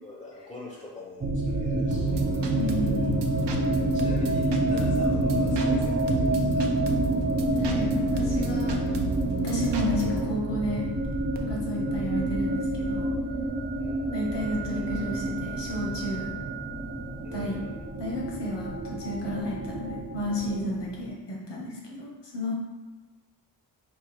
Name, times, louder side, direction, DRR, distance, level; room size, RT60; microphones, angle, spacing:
voice 1, 0.0-2.6 3.6-6.7 13.8-14.0 17.2-17.8, left 3 dB, 10° left, -3 dB, 0.7 m, -44 dB
sound 1, 1.2-21.0, right 1 dB, 25° right, 0.5 m, -28 dB
sound 2, 1.9-10.3, right 4 dB, 75° right, 0.7 m, -34 dB
voice 2, 2.5-3.2 7.6-8.8 9.4-10.9 11.4-13.1 14.1-16.3 17.3-17.6 18.0-22.5, left 1 dB, 70° left, -3 dB, 1.3 m, -32 dB
4.7 x 2.4 x 4.6 m, 1.3 s
wide cardioid pair, 100°, 43 cm